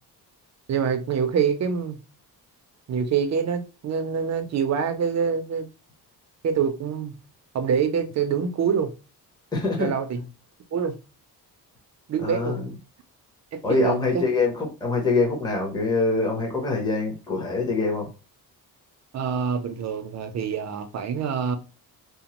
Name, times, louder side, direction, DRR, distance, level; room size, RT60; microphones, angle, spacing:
voice 1, 0.7-2.0 2.9-5.7 6.4-7.1 7.5-8.9 9.8-10.2 10.7-11.0 12.1-12.6 13.5-14.2 19.1-21.6, right 7 dB, 45° right, 0.5 m, -25 dB
voice 2, 9.5-10.2 12.2-12.8 13.6-18.1, left 3 dB, 10° left, 0.7 m, -25 dB
2.9 x 2.0 x 2.9 m
wide cardioid pair, 160°, 40 cm